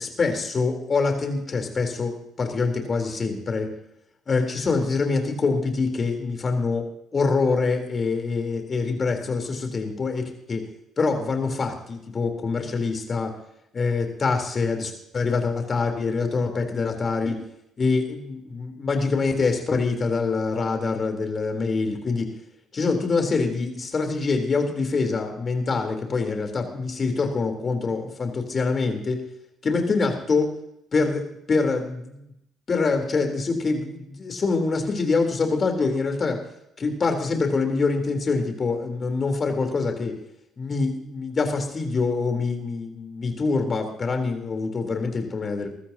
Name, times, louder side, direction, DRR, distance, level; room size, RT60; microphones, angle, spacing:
voice 1, 0.0-3.7 4.3-6.8 7.1-10.6 11.0-13.3 13.7-17.4 17.8-22.3 22.7-29.2 29.6-30.5 30.9-32.3 32.7-36.4 36.8-40.2 40.6-45.7, left 4 dB, 40° left, 4 dB, 3.8 m, -25 dB
24.0 x 13.0 x 2.9 m, 0.78 s
hypercardioid pair, 55°, 0 cm